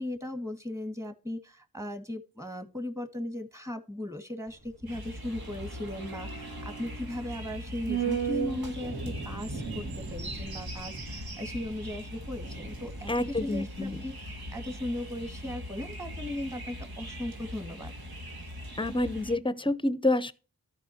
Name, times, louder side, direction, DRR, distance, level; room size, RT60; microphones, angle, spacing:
voice 1, 0.0-17.9, left 1 dB, 10° right, 1.9 m, -37 dB
sound 1, 4.5-14.9 15.2-15.3, right 7 dB, 55° right, 2.0 m, -38 dB
sound 2, 4.9-19.4, equal, 80° right, 1.6 m, -41 dB
voice 2, 13.1-14.0 18.8-20.3, left 2 dB, 15° left, 0.7 m, -28 dB
13.5 x 4.9 x 2.9 m
cardioid pair, 40°, 37 cm